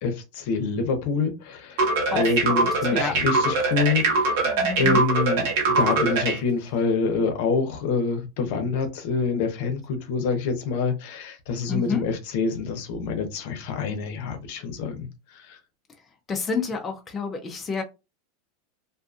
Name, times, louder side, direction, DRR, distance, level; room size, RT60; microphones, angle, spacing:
voice 1, 0.0-15.1 15.3-15.6, left 4 dB, 65° left, 0.7 m, -26 dB
sound 1, 1.8-6.4, right 3 dB, 70° right, 1.1 m, -22 dB
voice 2, 2.5-3.1 4.4-5.0 11.7-12.0 16.3-17.8, left 4 dB, 20° left, 0.5 m, -29 dB
2.5 x 2.4 x 2.4 m
supercardioid pair, 125°, 0 cm